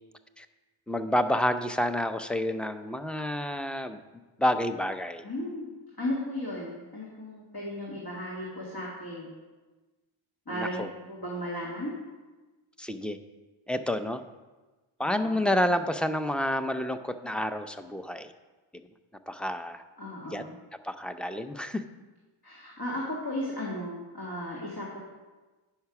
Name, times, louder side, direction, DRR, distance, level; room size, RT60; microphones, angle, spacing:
voice 1, 0.9-4.0 4.4-5.2 10.5-10.9 12.8-13.2 13.7-14.2 15.0-18.3 19.3-19.8 20.3-20.4 20.8-21.8, left 1 dB, ahead, 9 dB, 0.5 m, -29 dB
voice 2, 5.2-9.3 10.5-11.9 15.0-15.4 20.0-20.5 22.4-25.0, left 1 dB, 50° left, -4 dB, 2.0 m, -35 dB
9.3 x 5.7 x 5.9 m, 1.2 s
wide cardioid pair, 45°, 49 cm